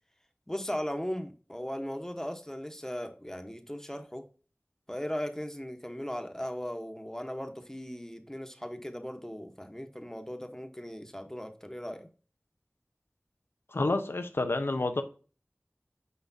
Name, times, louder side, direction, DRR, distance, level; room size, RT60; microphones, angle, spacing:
voice 1, 0.5-4.2 4.9-12.1, equal, 15° left, 1.0 m, -38 dB
voice 2, 13.7-15.0, left 2 dB, 90° left, 0.6 m, -29 dB
8.2 x 4.8 x 2.7 m
wide cardioid pair, 45°, 4 cm